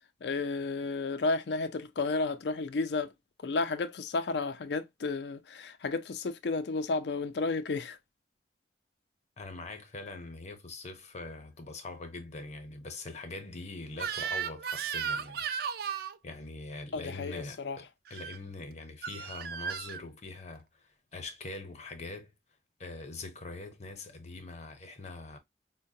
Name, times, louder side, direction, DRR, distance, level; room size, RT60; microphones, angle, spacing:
voice 1, 0.2-3.1 3.4-8.0 16.9-17.8, left 3 dB, 70° left, 0.4 m, -32 dB
voice 2, 9.4-15.5 16.2-22.3 22.8-25.4, left 3 dB, 40° left, 0.8 m, -43 dB
Crying sobbing / Screech, 14.0-16.2 18.1-18.4 19.0-20.0, right 7 dB, 60° right, 0.4 m, -35 dB
4.5 x 2.2 x 2.6 m
head